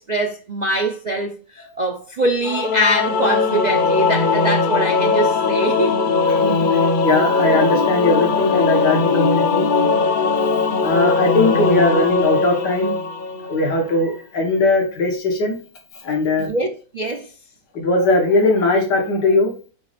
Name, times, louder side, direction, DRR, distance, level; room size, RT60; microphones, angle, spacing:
voice 1, 0.0-6.0 11.8-11.9 16.4-17.3, right 1 dB, 60° right, 0.4 m, -23 dB
Singing / Musical instrument, 2.4-13.7, left 4 dB, 55° left, 0.5 m, -19 dB
voice 2, 6.4-9.7 10.8-12.9 13.5-15.6 16.0-16.5 17.7-19.5, left 2 dB, 85° left, 2.2 m, -19 dB
8.2 x 3.2 x 5.1 m
omnidirectional pair, 1.8 m